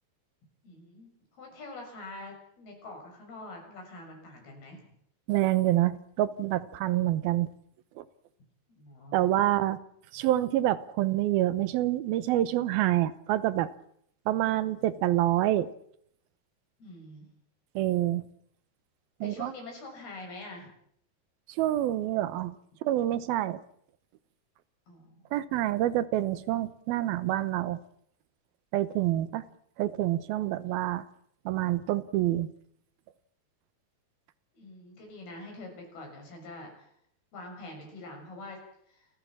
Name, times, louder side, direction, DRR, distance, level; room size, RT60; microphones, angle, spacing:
voice 1, 0.6-4.8 8.8-9.3 16.8-17.3 19.2-20.7 24.9-25.2 29.0-29.5 34.5-36.9 37.3-38.6 38.9-39.1, left 2 dB, 90° left, 2 dB, 8.2 m, -45 dB
voice 2, 5.3-7.5 8.0-8.1 9.1-9.8 10.1-13.7 14.3-15.7 17.8-18.2 19.2-19.5 21.6-22.5 22.8-23.6 25.3-27.8 28.7-29.4 29.8-31.0 31.5-32.5, right 14 dB, 80° right, 15 dB, 2.8 m, -27 dB
28.0 x 16.0 x 7.4 m, 0.69 s
omnidirectional pair, 4.3 m